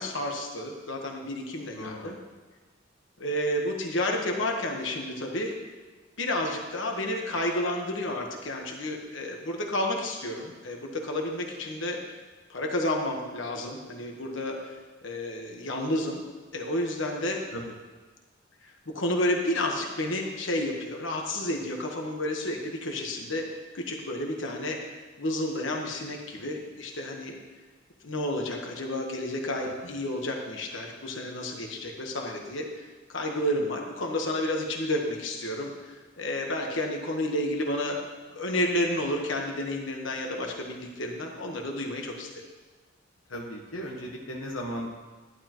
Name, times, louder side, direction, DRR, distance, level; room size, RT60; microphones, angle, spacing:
voice 1, 0.0-2.2 3.2-5.5 6.2-12.0 12.5-14.6 15.0-16.2 16.5-17.4 18.9-23.5 23.7-24.8 25.2-27.4 28.0-38.0 38.3-42.4, left 1 dB, 65° left, 1 dB, 1.3 m, -31 dB
voice 2, 1.7-2.1 17.5-17.6 43.3-44.9, equal, 85° left, -1 dB, 1.2 m, -36 dB
11.0 x 11.0 x 3.1 m, 1.3 s
head